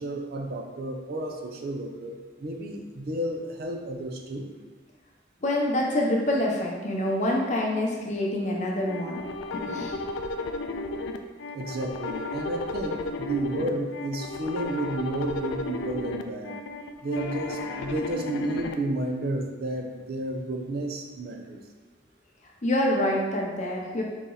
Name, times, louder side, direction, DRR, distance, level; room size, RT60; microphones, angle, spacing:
voice 1, 0.0-4.5 11.5-16.6 17.0-21.6, right 1 dB, 55° right, 2 dB, 0.5 m, -31 dB
voice 2, 5.4-9.2 9.7-10.0 22.6-24.0, left 1 dB, 40° left, -1 dB, 0.7 m, -26 dB
sound 1, 8.9-18.7, left 2 dB, 85° left, 0.3 m, -34 dB
4.0 x 3.0 x 3.8 m, 1.3 s
head